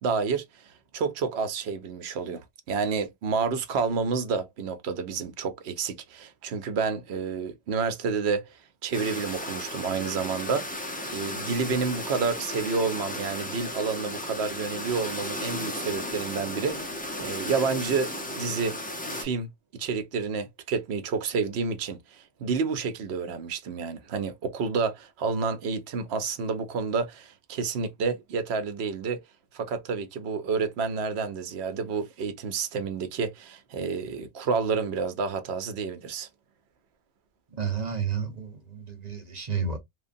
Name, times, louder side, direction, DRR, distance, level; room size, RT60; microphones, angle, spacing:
voice 1, 0.0-18.8 19.1-29.2 29.5-36.3, right 5 dB, 75° right, 0.9 m, -29 dB
sound 1, 8.9-19.2, left 1 dB, 10° left, 0.4 m, -35 dB
voice 2, 37.5-39.8, right 6 dB, 40° right, 0.9 m, -31 dB
3.0 x 2.2 x 2.5 m
omnidirectional pair, 1.1 m